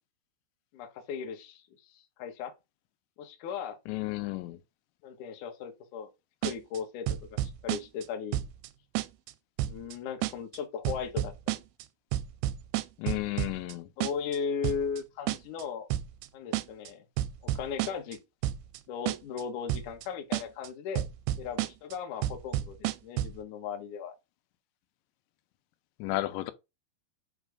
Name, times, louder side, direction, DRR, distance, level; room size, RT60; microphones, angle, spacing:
voice 1, 0.7-1.7 1.9-2.5 3.2-3.8 5.0-6.1 6.4-7.1 7.4-8.4 9.6-11.6 14.0-15.9 16.3-17.0 17.5-18.2 18.9-21.0 21.4-22.8 23.0-24.1, left 6 dB, 65° left, 2.1 m, -37 dB
voice 2, 3.9-4.6 13.0-13.9 26.0-26.5, left 18 dB, 85° left, 2.9 m, -33 dB
sound 1, 6.4-6.8 7.1-8.1 8.3-8.7 9.0-9.3 9.6-9.9 10.2-10.6 10.9-11.8 12.1-13.7 14.0-14.4 14.6-15.0 15.3-15.6 15.9-16.3 16.5-16.9 17.2-18.2 18.4-18.8 19.1-19.4 19.7-20.1 20.3-20.7 21.0-21.9 22.2-23.4, right 14 dB, 85° right, 2.3 m, -30 dB
8.1 x 3.1 x 5.0 m
omnidirectional pair, 5.1 m